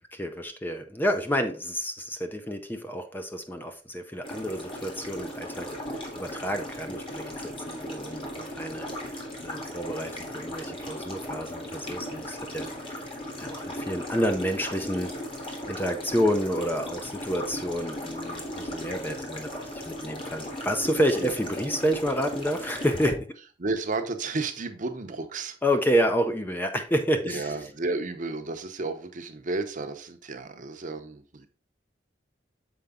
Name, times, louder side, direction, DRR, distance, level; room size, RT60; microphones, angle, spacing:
voice 1, 0.1-9.1 9.4-13.1 13.4-15.1 15.7-23.3 25.6-27.5, equal, 10° left, 6 dB, 0.5 m, -29 dB
sound 1, 4.2-23.1, equal, 30° left, 1.6 m, -37 dB
voice 2, 23.6-25.6 27.2-31.5, right 3 dB, 45° right, 6 dB, 0.8 m, -32 dB
7.0 x 4.5 x 3.7 m, 0.38 s
head